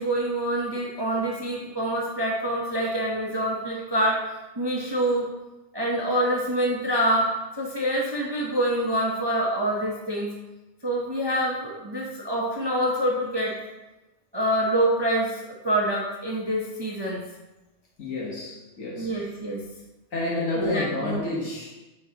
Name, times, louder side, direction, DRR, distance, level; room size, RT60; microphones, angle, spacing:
voice 1, 0.0-4.2 4.6-5.3 5.7-7.3 7.6-10.3 10.8-13.5 14.3-17.2 19.0-19.6 20.5-21.2, right 1 dB, 25° right, -3 dB, 0.5 m, -26 dB
voice 2, 18.0-19.3 20.1-21.7, left 2 dB, 65° left, -5 dB, 1.6 m, -29 dB
7.8 x 4.5 x 2.8 m, 1.1 s
omnidirectional pair, 1.5 m